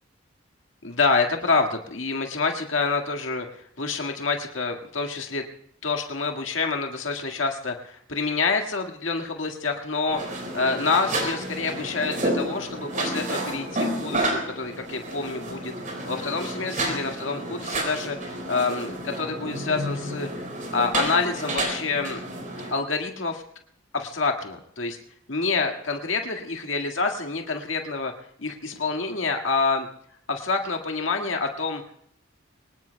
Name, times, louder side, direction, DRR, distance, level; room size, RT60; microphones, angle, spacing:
voice 1, 0.8-3.5 3.8-5.4 5.8-20.5 20.7-22.2 22.7-23.4 23.9-25.0 25.3-28.1 28.4-29.9 30.3-31.8, left 4 dB, 70° left, 3 dB, 2.0 m, -27 dB
sound 1, 10.1-22.7, right 1 dB, 40° right, 4.7 m, -30 dB
24.5 x 20.0 x 2.3 m, 0.67 s
head